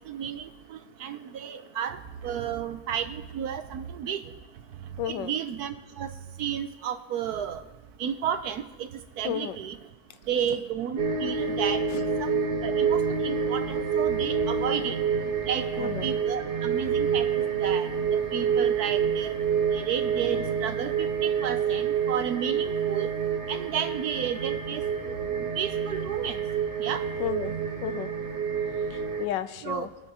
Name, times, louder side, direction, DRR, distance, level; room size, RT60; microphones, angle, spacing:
voice 1, 0.0-4.2 5.0-6.1 6.4-7.6 8.0-8.9 9.2-9.8 10.3-11.8 12.2-15.0 15.5-19.3 19.7-23.1 23.5-26.4 26.8-27.0 29.6-29.9, right 8 dB, 70° right, 9 dB, 1.1 m, -32 dB
voice 2, 5.0-5.3 9.2-9.6 11.9-12.0 15.8-16.1 27.2-28.1 28.9-29.9, left 11 dB, 85° left, 12 dB, 1.3 m, -33 dB
sound 1, 11.0-29.3, right 6 dB, 40° right, 0.8 m, -28 dB
22.0 x 8.0 x 2.9 m, 1.2 s
omnidirectional pair, 1.9 m